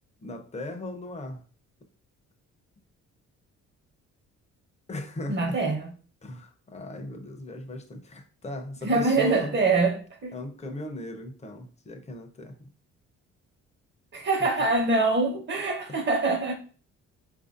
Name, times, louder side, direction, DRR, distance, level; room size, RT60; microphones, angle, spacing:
voice 1, 0.2-1.4 4.9-5.6 6.2-9.6 10.3-12.6 14.6-14.7 15.9-16.0, left 1 dB, 20° left, 0.7 m, -37 dB
voice 2, 5.3-5.9 8.8-10.3 14.1-16.5, right 3 dB, 40° right, 1.0 m, -24 dB
4.6 x 2.6 x 2.5 m
cardioid pair, 90°, 30 cm